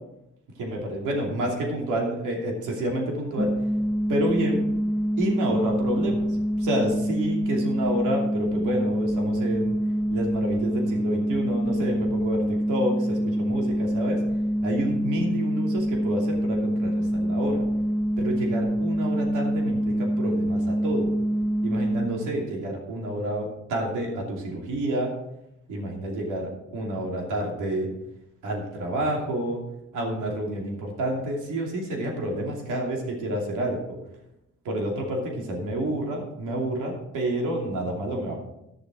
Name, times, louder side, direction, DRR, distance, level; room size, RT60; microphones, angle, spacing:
voice 1, 0.6-3.5 4.1-4.6 5.2-6.3 6.6-9.7 10.1-14.2 14.6-17.6 18.2-21.1 21.6-25.1 25.7-27.9 28.4-29.6 29.9-33.8 34.6-38.4, right 1 dB, 85° right, 0 dB, 2.8 m, -29 dB
sound 1, 3.4-22.1, equal, 5° right, 1.1 m, -25 dB
13.0 x 6.9 x 4.9 m, 0.85 s
cardioid pair, 90°, 30 cm